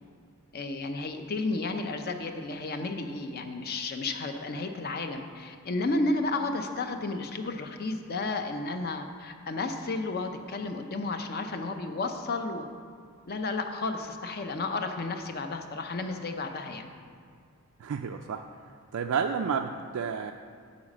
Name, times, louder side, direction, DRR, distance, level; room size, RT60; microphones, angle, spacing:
voice 1, 0.5-12.6 13.3-16.9, left 3 dB, 45° left, 6 dB, 0.6 m, -32 dB
voice 2, 17.8-18.4 18.9-20.3, right 6 dB, 70° right, 3 dB, 0.3 m, -30 dB
10.0 x 4.1 x 7.3 m, 2.1 s
head